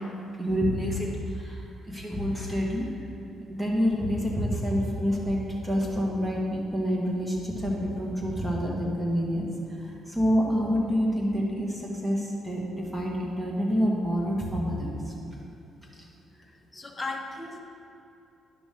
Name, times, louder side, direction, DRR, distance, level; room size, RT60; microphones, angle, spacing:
voice 1, 0.0-2.9 3.5-15.1 15.9-16.1, equal, 5° right, -3 dB, 1.7 m, -28 dB
voice 2, 16.5-17.6, left 3 dB, 20° left, 2 dB, 1.0 m, -36 dB
10.0 x 6.1 x 3.8 m, 2.8 s
cardioid pair, 90°, 0 cm